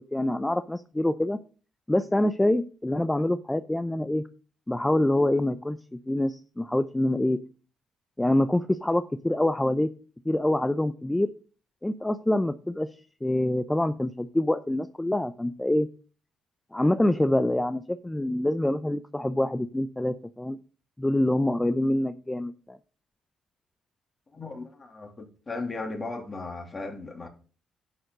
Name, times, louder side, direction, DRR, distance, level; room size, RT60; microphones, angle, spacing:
voice 1, 0.0-1.4 1.9-4.2 4.7-5.8 6.1-7.4 8.2-9.9 10.2-11.3 11.8-12.9 13.2-15.9 16.7-20.6 21.0-22.8, left 1 dB, 10° left, 0.7 m, -25 dB
voice 2, 24.3-27.3, left 3 dB, 30° left, 3.1 m, -36 dB
11.0 x 6.5 x 5.3 m
cardioid pair, 90°, 0 cm